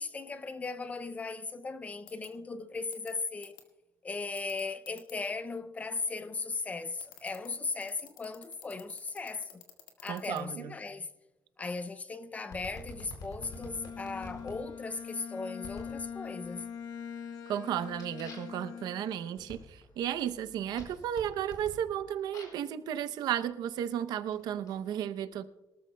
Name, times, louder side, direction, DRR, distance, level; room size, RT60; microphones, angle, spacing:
voice 1, 0.0-3.6 4.0-9.6 10.0-11.1 11.6-16.7, left 4 dB, 20° left, 0.4 m, -37 dB
sound 1, 2.1-2.3 2.9-3.1 3.4-3.6 4.4-5.1 7.0-10.4, left 11 dB, 85° left, 2.0 m, -51 dB
voice 2, 10.1-10.7 17.5-19.6 20.0-25.4, right 10 dB, 65° right, 0.7 m, -34 dB
sound 2, 12.5-14.6 15.6-16.0 16.4-16.9 17.3-22.7 23.5-24.7, left 1 dB, 55° left, 4.5 m, -49 dB
Bowed string instrument, 13.4-19.5, left 7 dB, 70° left, 1.3 m, -43 dB
23.0 x 13.5 x 2.2 m
cardioid pair, 175°, 8 cm